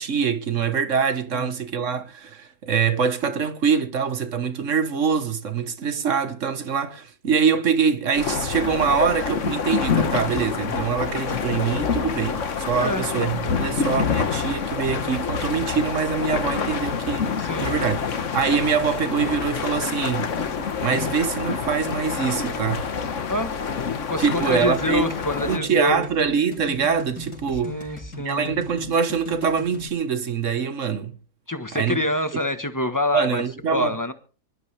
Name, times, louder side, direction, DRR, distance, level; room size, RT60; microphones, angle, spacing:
voice 1, 0.0-18.1 18.3-20.3 20.8-22.9 24.2-25.0 25.5-31.1 31.7-32.0 33.1-33.9, right 6 dB, 55° right, 1.6 m, -24 dB
sound 1, 8.2-25.6, left 6 dB, 55° left, 1.5 m, -27 dB
voice 2, 12.7-13.1 17.4-17.8 23.3-23.5 24.1-26.0 27.6-28.6 31.5-33.4 33.7-34.1, left 2 dB, 15° left, 1.2 m, -26 dB
sound 2, 24.7-29.9, left 1 dB, 90° left, 4.9 m, -39 dB
25.0 x 12.5 x 3.4 m
omnidirectional pair, 1.6 m